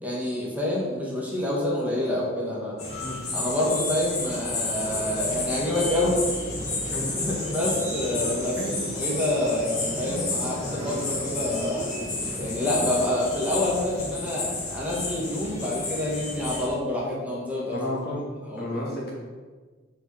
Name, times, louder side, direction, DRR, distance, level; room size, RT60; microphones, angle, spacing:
voice 1, 0.0-2.9 3.3-6.2 7.1-8.6 8.9-11.9 12.4-17.9 18.5-18.6, left 1 dB, 10° right, -5 dB, 1.7 m, -27 dB
sound 1, 2.8-16.7, left 3 dB, 35° left, 1.5 m, -32 dB
sound 2, 4.8-13.2, right 1 dB, 25° right, 1.0 m, -36 dB
voice 2, 8.6-8.9 17.7-18.2 18.6-19.1, left 1 dB, 55° left, -4 dB, 2.4 m, -32 dB
6.8 x 4.5 x 6.4 m, 1.4 s
head